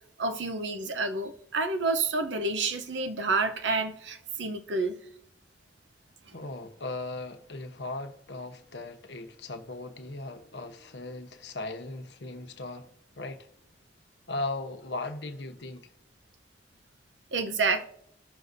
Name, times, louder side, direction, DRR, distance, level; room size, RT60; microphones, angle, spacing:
voice 1, 0.2-5.0 17.3-17.8, right 3 dB, 85° right, 0.8 m, -29 dB
voice 2, 6.3-13.5 14.3-15.9, left 2 dB, 70° left, 1.0 m, -38 dB
19.0 x 6.6 x 2.7 m
head